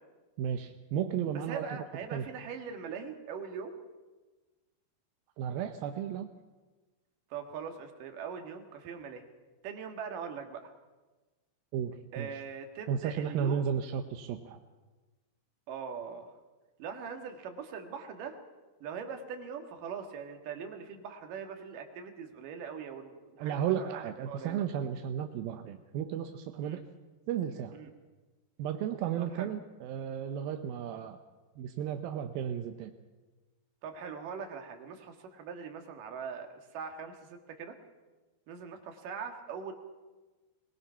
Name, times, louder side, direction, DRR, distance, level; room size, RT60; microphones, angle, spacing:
voice 1, 0.4-1.7 2.1-2.3 5.4-6.3 11.7-12.4 12.9-14.6 23.4-26.8 27.3-27.7 28.6-31.2 31.6-32.9, right 9 dB, 75° right, 6 dB, 2.3 m, -34 dB
voice 2, 1.5-3.7 7.3-9.2 9.6-10.7 12.1-13.7 15.7-16.3 16.8-18.4 18.8-24.6 26.6-26.8 27.7-27.9 29.2-29.5 33.8-37.8 38.5-39.7, right 6 dB, 55° right, 5 dB, 3.0 m, -41 dB
22.0 x 21.5 x 5.7 m, 1.2 s
omnidirectional pair, 5.1 m